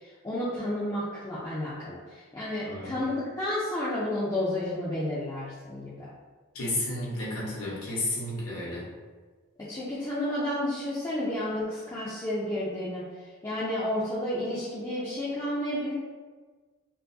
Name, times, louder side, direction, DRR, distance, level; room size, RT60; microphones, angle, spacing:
voice 1, 0.2-6.1 9.7-13.0 13.4-15.9, left 1 dB, 15° left, -10 dB, 0.5 m, -31 dB
voice 2, 2.6-2.9 6.5-8.9, left 1 dB, 80° left, -6 dB, 1.1 m, -32 dB
4.5 x 2.1 x 2.6 m, 1.4 s
head